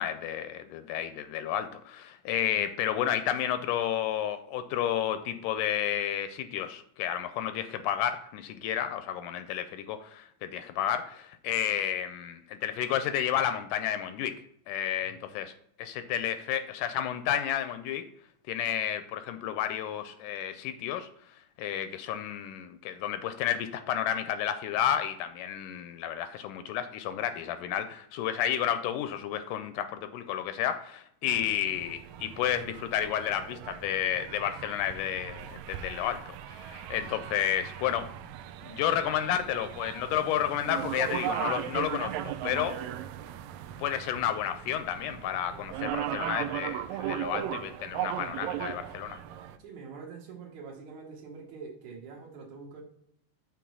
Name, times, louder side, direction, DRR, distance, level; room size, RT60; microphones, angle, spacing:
voice 1, 0.0-14.3 14.7-15.5 15.8-18.0 18.5-21.1 21.6-38.1 38.6-42.8 43.8-49.2, left 10 dB, 80° left, 2.0 m, -31 dB
sound 1, 31.3-49.6, right 11 dB, 85° right, 1.6 m, -37 dB
voice 2, 49.6-52.8, right 5 dB, 65° right, 2.3 m, -45 dB
7.0 x 3.7 x 6.1 m
omnidirectional pair, 3.9 m